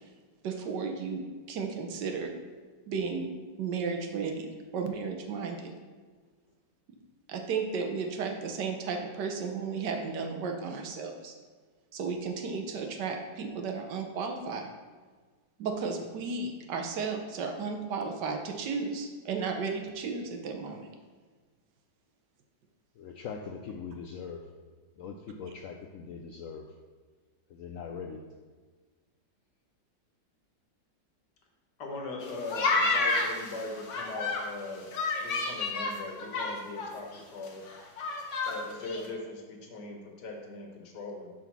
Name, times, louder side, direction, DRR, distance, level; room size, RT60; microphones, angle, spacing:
voice 1, 0.4-2.3 2.9-3.3 3.6-5.7 7.3-11.3 11.9-14.7 15.6-20.9, right 5 dB, 75° right, 4 dB, 1.4 m, -34 dB
voice 2, 23.0-24.4 25.0-26.7 27.5-28.2, left 6 dB, 90° left, 3 dB, 0.7 m, -41 dB
voice 3, 31.8-34.9 35.2-37.6 38.5-41.3, left 2 dB, 70° left, 1 dB, 1.7 m, -40 dB
sound 1, 32.2-34.5 34.9-36.9 37.1-37.2 37.5-38.6 38.8-39.1, left 3 dB, 50° left, 1.1 m, -30 dB
7.4 x 3.9 x 5.9 m, 1.4 s
omnidirectional pair, 1.9 m